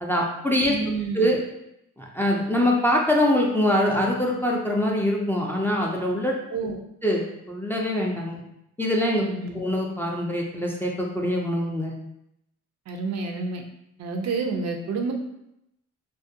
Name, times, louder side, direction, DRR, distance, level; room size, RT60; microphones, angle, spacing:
voice 1, 0.0-0.7 1.1-1.4 2.0-6.3 7.0-8.4 8.8-9.2 9.5-11.9, left 1 dB, 5° left, -2 dB, 0.3 m, -24 dB
voice 2, 0.6-1.3 6.5-6.8 9.2-9.6 12.9-13.6 14.0-15.1, right 4 dB, 60° right, 3 dB, 0.5 m, -29 dB
2.3 x 2.1 x 2.6 m, 0.80 s
cardioid pair, 90°, 30 cm